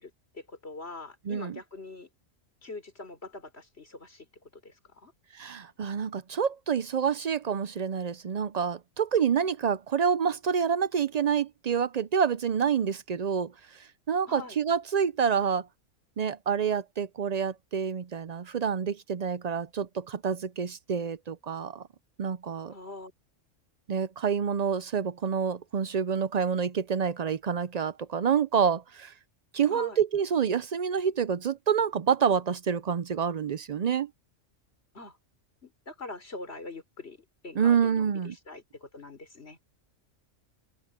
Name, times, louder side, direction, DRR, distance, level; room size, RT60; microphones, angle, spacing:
voice 1, 0.0-2.1 2.6-4.3 4.6-5.1 14.3-14.6 22.7-23.1 29.7-30.0 34.9-35.2 35.6-39.6, left 3 dB, 55° left, 4.6 m, -43 dB
voice 2, 5.3-15.7 16.2-21.8 22.2-22.7 23.9-29.1 29.5-34.1 37.6-38.3, right 7 dB, 55° right, 0.4 m, -28 dB
omnidirectional pair, 1.3 m